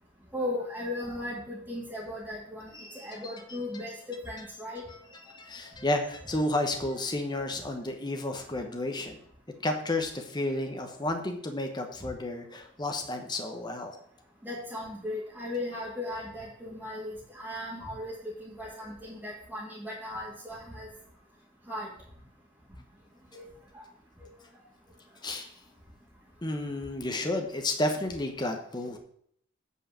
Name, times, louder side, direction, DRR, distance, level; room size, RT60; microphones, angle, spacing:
voice 1, 0.3-4.8 7.3-7.4 14.4-20.9 21.7-21.9 23.3-23.4 23.7-23.8 24.2-24.3, left 1 dB, 10° right, -8 dB, 2.1 m, -37 dB
voice 2, 2.7-3.6 4.4-4.5 4.7-9.2 9.6-14.0 25.2-25.5 26.4-29.0, left 1 dB, 20° left, 4 dB, 1.0 m, -32 dB
8.3 x 4.7 x 7.4 m, 0.65 s
head